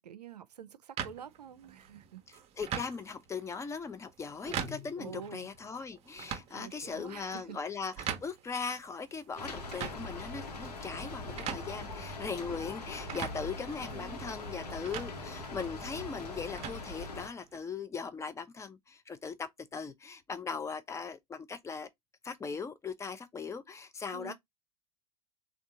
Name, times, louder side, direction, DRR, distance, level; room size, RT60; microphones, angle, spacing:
voice 1, 0.0-2.2 5.0-5.5 6.5-7.6 24.1-24.3, right 9 dB, 75° right, 0.5 m, -47 dB
sound 1, 1.0-17.6, right 8 dB, 30° right, 0.7 m, -44 dB
voice 2, 2.6-21.9 22.2-24.3, left 5 dB, 15° left, 0.5 m, -39 dB
sound 2, 4.4-5.9, left 5 dB, 5° right, 0.8 m, -49 dB
Rain, 9.4-17.3, left 2 dB, 70° left, 1.1 m, -42 dB
3.5 x 2.4 x 3.7 m
figure-of-eight pair, 85°, 21 cm